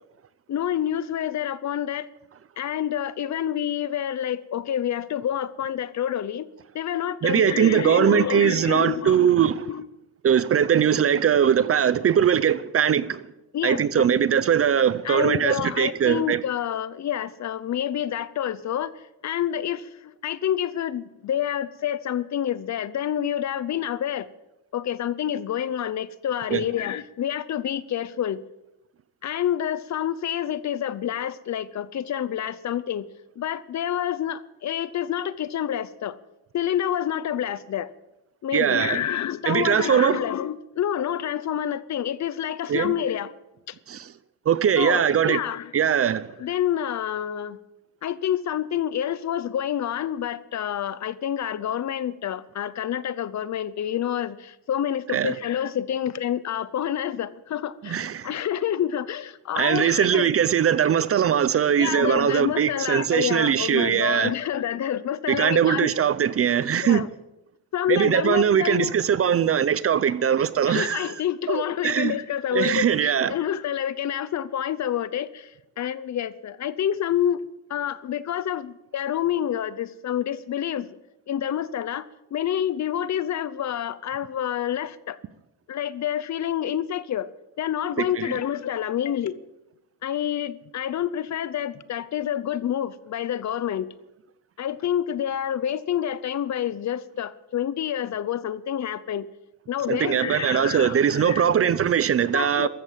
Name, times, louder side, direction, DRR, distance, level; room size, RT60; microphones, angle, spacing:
voice 1, 0.5-2.1 2.6-6.5 6.7-9.3 9.7-9.9 13.5-14.1 15.0-18.9 19.2-24.3 24.7-28.4 29.2-33.1 33.4-36.2 36.5-37.9 38.4-43.3 43.7-43.8 44.8-45.7 46.4-47.6 48.0-60.3 61.8-65.9 66.8-67.1 67.7-68.9 70.7-77.4 77.7-80.9 81.3-85.2 85.7-87.3 87.6-89.4 90.0-93.9 94.6-99.3 99.7-101.5 102.3-102.7, left 10 dB, 45° left, 0.7 m, -28 dB
voice 2, 7.2-9.7 10.2-13.2 13.6-16.4 26.5-26.6 38.5-39.0 39.5-40.2 42.7-42.9 43.9-44.1 44.5-45.4 45.7-46.3 55.1-55.3 57.8-58.3 59.6-64.3 65.3-67.0 67.9-71.1 71.5-72.1 72.5-73.3 88.0-88.4 99.9-102.7, right 8 dB, 35° right, 0.5 m, -21 dB
14.5 x 13.5 x 7.4 m
cardioid pair, 180°, 40 cm